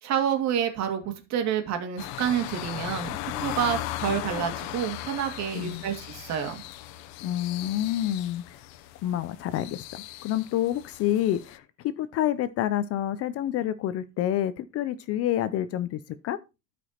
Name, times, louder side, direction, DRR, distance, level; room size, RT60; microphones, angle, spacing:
voice 1, 0.0-6.6, right 9 dB, 45° right, 2.3 m, -28 dB
sound 1, 2.0-11.6, left 14 dB, 80° left, 0.9 m, -37 dB
voice 2, 7.2-8.4 9.0-16.4, left 12 dB, 40° left, 0.5 m, -28 dB
12.5 x 5.1 x 4.3 m
cardioid pair, 175°, 37 cm